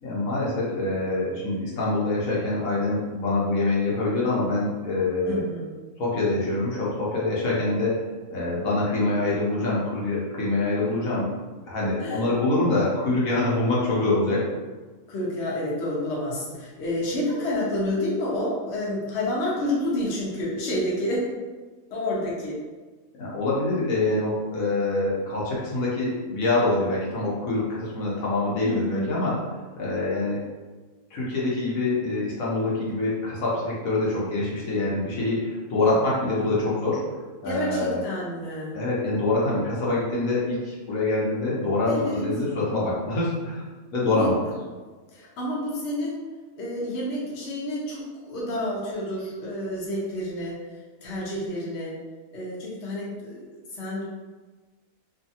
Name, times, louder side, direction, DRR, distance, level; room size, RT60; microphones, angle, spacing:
voice 1, 0.0-5.4 6.0-8.0 8.3-11.3 11.7-14.5 23.2-29.3 29.7-30.4 31.1-37.0 37.4-38.0 38.7-43.7 43.9-44.3, left 2 dB, 70° left, -6 dB, 1.2 m, -25 dB
voice 2, 5.3-5.7 12.0-12.2 15.1-21.3 21.9-22.6 28.6-29.1 35.8-36.1 37.4-38.8 41.8-42.2 44.0-44.3 45.1-46.2 46.6-51.9 52.3-53.4 53.7-54.0, left 1 dB, 55° left, -6 dB, 1.0 m, -29 dB
2.7 x 2.5 x 2.7 m, 1.3 s
omnidirectional pair, 1.5 m